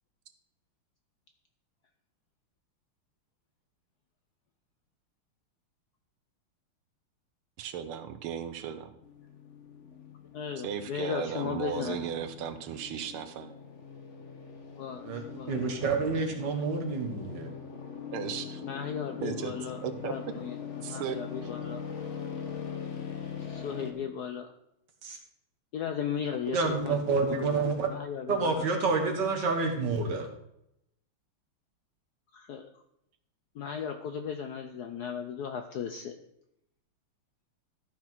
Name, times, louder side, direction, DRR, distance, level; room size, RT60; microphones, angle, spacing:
voice 1, 7.6-8.9 10.6-13.5 18.1-18.6 19.2-19.5 19.8-20.1 20.8-21.2, right 8 dB, 80° right, 10 dB, 1.7 m, -35 dB
sound 1, 9.0-23.9, left 6 dB, 45° left, 1.0 m, -42 dB
voice 2, 10.3-12.0 14.8-15.6 18.6-21.8 23.4-24.5 25.7-27.0 27.2-27.6 27.9-28.7 32.3-32.8 33.5-36.2, left 7 dB, 70° left, 6 dB, 0.9 m, -36 dB
voice 3, 15.5-17.5 25.0-25.2 26.5-27.9 28.3-30.3, right 4 dB, 55° right, 4 dB, 2.0 m, -28 dB
13.0 x 5.9 x 4.5 m, 0.78 s
omnidirectional pair, 2.4 m